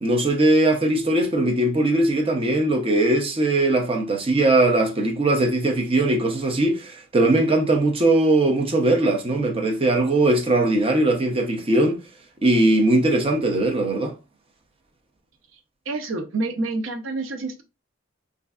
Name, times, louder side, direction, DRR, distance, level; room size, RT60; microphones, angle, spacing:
voice 1, 0.0-12.0 12.4-14.1, right 2 dB, 30° right, 0.5 m, -20 dB
voice 2, 15.9-17.6, right 2 dB, 75° right, 0.6 m, -28 dB
3.1 x 2.5 x 2.3 m
head